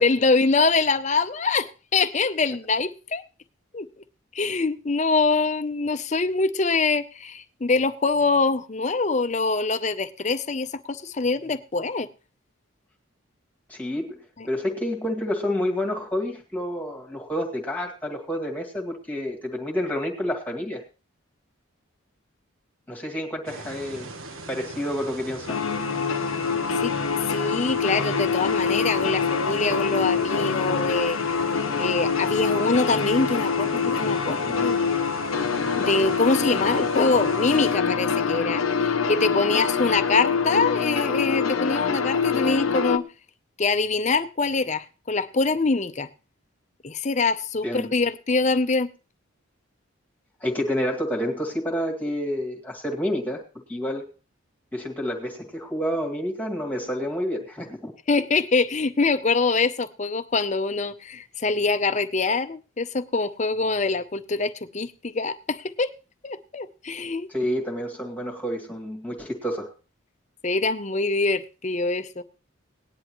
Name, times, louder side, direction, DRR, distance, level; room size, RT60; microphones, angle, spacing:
voice 1, 0.0-3.2 3.7-3.9 4.3-12.1 26.8-26.9 27.3-31.2 31.8-34.9 35.8-43.0 43.6-46.1 46.8-48.9 58.1-65.9 66.2-67.3 70.4-72.2, left 3 dB, 35° left, 0.6 m, -24 dB
voice 2, 13.7-14.2 14.5-20.8 22.9-24.1 24.5-25.6 47.6-47.9 50.4-53.4 53.7-54.1 54.7-57.9 67.3-69.7, equal, 10° left, 1.9 m, -29 dB
sound 1, 23.5-37.8, right 3 dB, 80° right, 1.2 m, -40 dB
sound 2, 25.5-43.0, left 5 dB, 85° left, 0.7 m, -25 dB
18.5 x 10.5 x 3.1 m
head